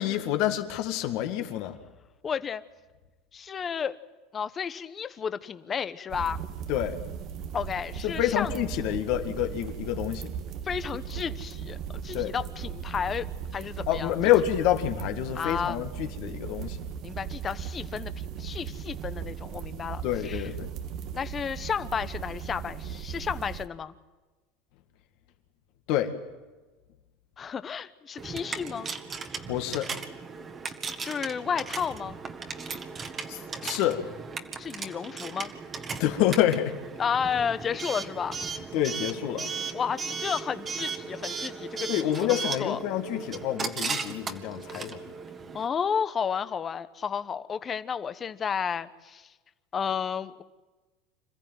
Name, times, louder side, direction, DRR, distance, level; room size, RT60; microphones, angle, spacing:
voice 1, 0.0-1.8 6.7-7.0 8.0-10.3 12.1-12.3 13.9-16.8 20.0-20.7 25.9-26.1 29.5-29.9 33.3-34.0 36.0-36.7 38.7-39.5 41.9-45.0, left 12 dB, 65° left, 6 dB, 2.1 m, -27 dB
voice 2, 2.2-2.6 3.3-4.0 4.3-6.4 7.5-8.6 10.6-13.3 13.5-14.1 15.3-15.8 17.0-20.5 21.1-23.9 27.4-28.9 31.0-32.2 34.6-35.5 37.0-38.4 39.7-42.8 45.5-49.3 49.7-50.4, left 7 dB, 30° left, 13 dB, 1.0 m, -32 dB
sound 1, 6.1-23.6, right 8 dB, 50° right, 1.2 m, -37 dB
Coin (dropping) / Alarm, 28.2-45.7, right 5 dB, 25° right, 1.7 m, -36 dB
26.5 x 14.5 x 9.3 m, 1.2 s
supercardioid pair, 115°, 0 cm